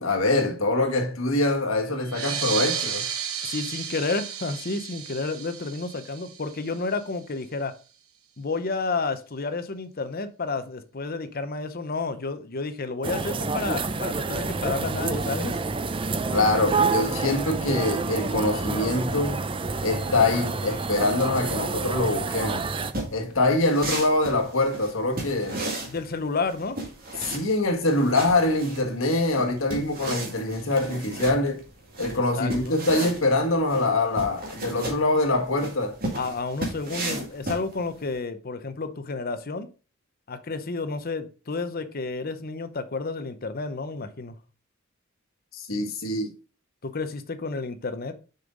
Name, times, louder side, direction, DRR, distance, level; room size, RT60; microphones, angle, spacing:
voice 1, 0.0-3.0 16.3-19.4 19.8-22.7 23.1-25.6 27.2-31.6 32.0-36.0 45.5-46.3, left 2 dB, 70° left, 1.7 m, -24 dB
sound 1, 2.0-7.2, right 8 dB, 85° right, 1.1 m, -33 dB
voice 2, 3.4-7.7 8.4-15.6 25.8-26.8 32.1-32.8 36.1-39.7 40.3-44.3 46.8-48.1, left 3 dB, 45° left, 0.7 m, -31 dB
sound 2, 13.0-22.9, right 4 dB, 25° right, 0.4 m, -28 dB
sound 3, 22.9-38.1, right 2 dB, 45° right, 2.1 m, -35 dB
6.5 x 5.3 x 3.8 m
head